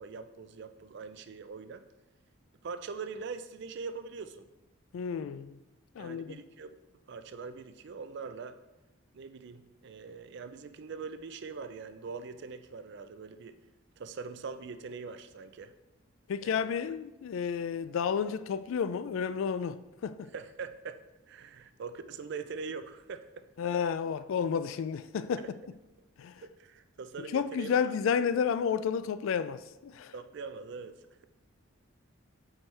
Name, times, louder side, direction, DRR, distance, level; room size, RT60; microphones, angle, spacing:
voice 1, 0.0-1.8 2.6-4.4 6.0-6.7 7.1-8.6 9.1-13.5 14.0-15.7 16.4-16.7 20.3-21.0 21.3-23.5 26.4-28.0 30.1-31.2, right 5 dB, 55° right, 0.4 m, -42 dB
voice 2, 4.9-5.6 6.0-6.4 16.3-20.3 23.6-25.5 26.2-26.4 27.2-30.1, left 7 dB, 70° left, 0.3 m, -31 dB
7.8 x 4.5 x 3.3 m
head